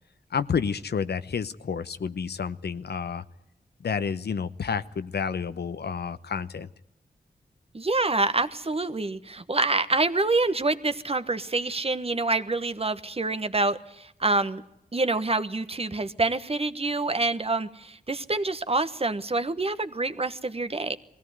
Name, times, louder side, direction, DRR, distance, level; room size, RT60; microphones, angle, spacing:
voice 1, 0.3-3.2 3.8-6.7, left 6 dB, 85° left, 13 dB, 0.9 m, -30 dB
voice 2, 7.7-14.6 14.9-21.0, right 3 dB, 35° right, 11 dB, 1.3 m, -26 dB
21.0 x 16.5 x 9.3 m, 0.83 s
wide cardioid pair, 75°, 17 cm